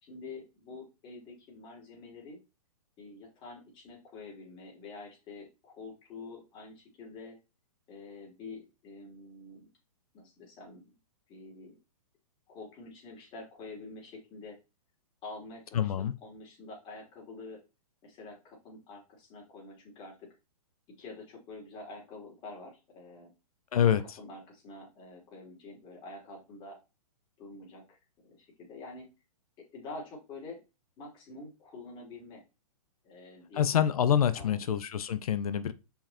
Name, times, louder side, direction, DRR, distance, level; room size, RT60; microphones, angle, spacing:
voice 1, 0.0-2.4 3.0-7.4 7.9-9.7 10.1-11.0 11.3-11.8 12.5-14.6 15.2-17.6 18.0-20.3 21.0-23.3 23.7-26.8 27.4-28.0 28.2-29.1 29.6-30.6 31.0-32.4 33.0-33.9 34.3-34.7, left 3 dB, 25° left, 3.5 m, -47 dB
voice 2, 15.7-16.1 23.7-24.0 33.6-35.7, left 9 dB, 70° left, 0.9 m, -26 dB
5.8 x 5.1 x 4.3 m
hypercardioid pair, 145°, 20 cm